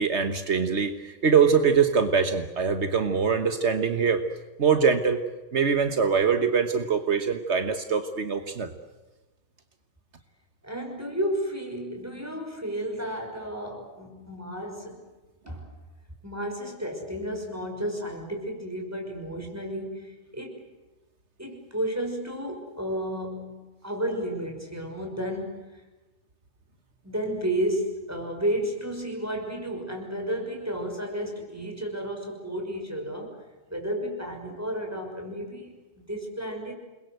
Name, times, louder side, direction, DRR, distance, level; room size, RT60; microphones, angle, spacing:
voice 1, 0.0-4.2 4.6-5.2 5.5-8.7, right 6 dB, 70° right, 8 dB, 1.6 m, -23 dB
voice 2, 10.6-15.0 15.5-15.7 16.2-20.6 21.4-25.8 27.0-33.4 33.7-35.7 36.0-36.7, equal, 15° right, 2 dB, 6.1 m, -32 dB
29.0 x 21.5 x 8.0 m, 1.1 s
omnidirectional pair, 1.2 m